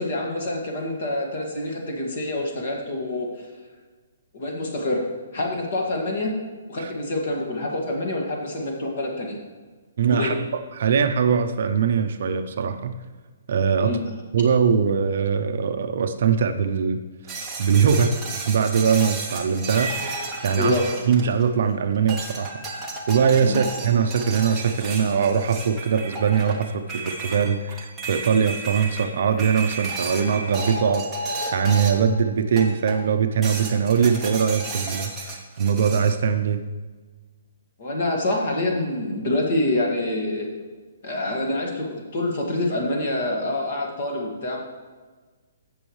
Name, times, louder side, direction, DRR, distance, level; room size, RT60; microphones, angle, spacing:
voice 1, 0.0-3.5 4.3-5.1 5.3-6.3 6.7-9.4 10.1-10.4 13.8-14.0 20.6-20.9 23.4-23.6 37.8-40.5 41.0-44.6, left 1 dB, 45° left, 0 dB, 2.0 m, -26 dB
voice 2, 10.0-10.4 10.8-12.9 13.5-13.9 14.3-17.0 17.6-18.1 18.4-19.9 20.4-20.8 21.1-22.5 23.1-31.0 31.5-36.6, right 6 dB, 45° right, 7 dB, 0.6 m, -21 dB
sound 1, 17.3-21.7 22.1-32.2 32.6-33.1 33.4-36.2, right 3 dB, 5° right, 0.9 m, -33 dB
15.5 x 6.2 x 3.2 m, 1.4 s
hypercardioid pair, 175°, 0 cm